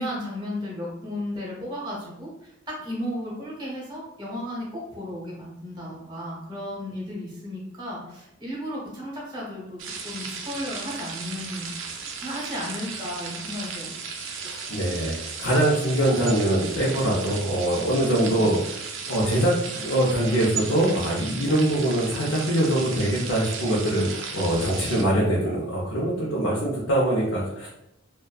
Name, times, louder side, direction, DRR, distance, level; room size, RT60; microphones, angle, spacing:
voice 1, 0.0-11.7 12.2-14.0 18.0-18.5, left 1 dB, 20° right, -4 dB, 0.8 m, -34 dB
sound 1, 9.8-25.0, right 5 dB, 70° right, 0.4 m, -35 dB
voice 2, 14.5-18.6 19.1-27.7, right 1 dB, 80° left, -5 dB, 0.6 m, -23 dB
2.5 x 2.2 x 2.2 m, 0.85 s
head